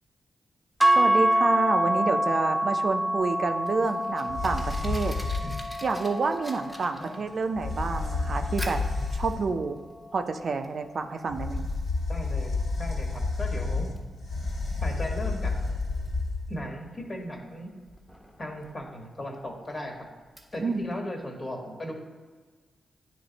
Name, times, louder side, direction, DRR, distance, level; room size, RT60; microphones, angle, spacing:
sound 1, 0.8-9.0, equal, 10° right, 0.6 m, -27 dB
voice 1, 0.9-5.2 5.8-8.8 9.1-9.8 10.1-11.7 20.6-20.9, right 4 dB, 60° right, 6 dB, 0.5 m, -29 dB
Fire, 3.6-21.0, equal, 10° left, 1.3 m, -48 dB
sound 2, 4.3-5.7 7.3-7.4 7.5-9.6 11.3-16.7, left 3 dB, 70° left, 1.9 m, -30 dB
voice 2, 12.1-13.9 14.8-15.5 16.5-17.7 18.4-19.9 20.5-21.9, left 1 dB, 45° left, 0 dB, 1.5 m, -37 dB
9.4 x 3.2 x 4.0 m, 1.4 s
supercardioid pair, 45°, 0 cm